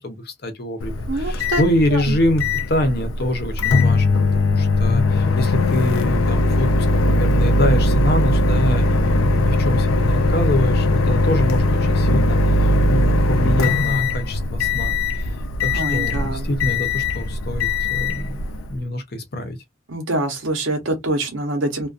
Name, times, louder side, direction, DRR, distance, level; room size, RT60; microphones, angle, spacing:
voice 1, 0.0-2.4 2.7-18.4 18.7-19.6, left 1 dB, 50° left, 0.7 m, -25 dB
Microwave oven, 0.8-18.8, left 2 dB, 90° left, 0.4 m, -19 dB
voice 2, 1.1-1.6 1.9-2.1 15.7-16.5 19.9-21.9, right 2 dB, 80° right, 0.9 m, -25 dB
2.4 x 2.2 x 2.4 m
head